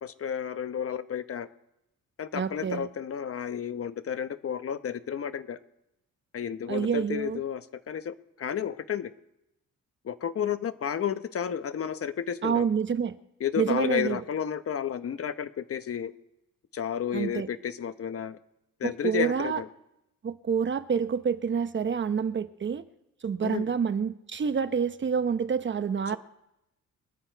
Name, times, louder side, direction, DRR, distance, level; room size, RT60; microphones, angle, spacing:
voice 1, 0.0-1.5 2.2-5.6 6.3-9.1 10.0-12.7 13.4-16.1 16.7-18.4 18.8-19.7 23.4-23.7 26.1-26.2, left 8 dB, 50° left, 11 dB, 1.1 m, -32 dB
voice 2, 2.3-2.9 6.7-7.4 12.4-13.2 13.6-14.2 17.1-17.5 18.8-19.6 20.2-22.8 23.2-26.2, right 6 dB, 40° right, 11 dB, 0.9 m, -28 dB
25.0 x 8.9 x 4.6 m, 0.85 s
cardioid pair, 90°, 30 cm